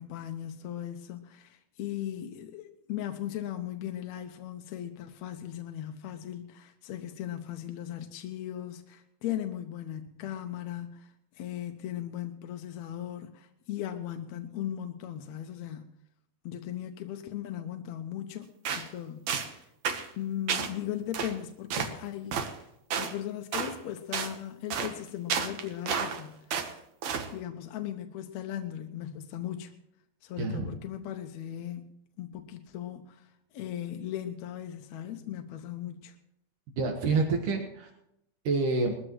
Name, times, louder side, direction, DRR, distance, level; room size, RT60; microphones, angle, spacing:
voice 1, 0.0-15.9 16.4-18.5 18.7-19.7 20.2-22.7 23.0-26.6 27.3-29.7 30.2-36.2, left 11 dB, 70° left, 6 dB, 1.8 m, -38 dB
sound 1, 18.7-18.9 19.3-19.5 19.9-20.1 20.5-20.7 21.1-21.3 21.7-21.9 22.3-22.5 22.9-23.1 23.5-23.7 24.1-24.3 24.7-24.9 25.3-26.2 26.5-26.7 27.0-27.3, right 7 dB, 65° right, 2.3 m, -31 dB
voice 2, 30.4-30.8 36.8-37.9 38.4-38.9, right 3 dB, 80° right, 2 dB, 3.1 m, -27 dB
21.0 x 14.0 x 3.1 m, 0.79 s
omnidirectional pair, 3.6 m